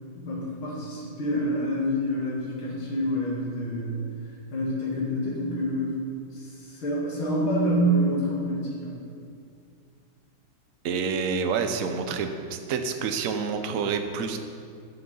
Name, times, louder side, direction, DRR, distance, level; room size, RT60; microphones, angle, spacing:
voice 1, 0.1-4.0 4.5-6.0 6.3-8.9, equal, 85° left, -5 dB, 2.9 m, -27 dB
voice 2, 10.8-14.4, right 5 dB, 60° right, 6 dB, 0.9 m, -28 dB
13.0 x 6.4 x 5.5 m, 2.3 s
omnidirectional pair, 2.2 m